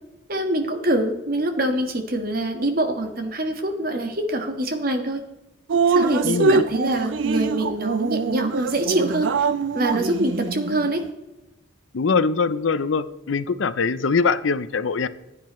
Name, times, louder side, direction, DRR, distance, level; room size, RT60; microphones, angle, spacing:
voice 1, 0.3-5.2 5.9-9.3 9.7-11.0, right 1 dB, 50° right, 5 dB, 1.5 m, -24 dB
Drip, 5.7-10.9, right 4 dB, 65° right, 0.5 m, -23 dB
voice 2, 6.2-6.6 11.9-15.1, left 5 dB, 75° left, 15 dB, 0.5 m, -22 dB
15.0 x 9.6 x 3.1 m, 0.97 s
head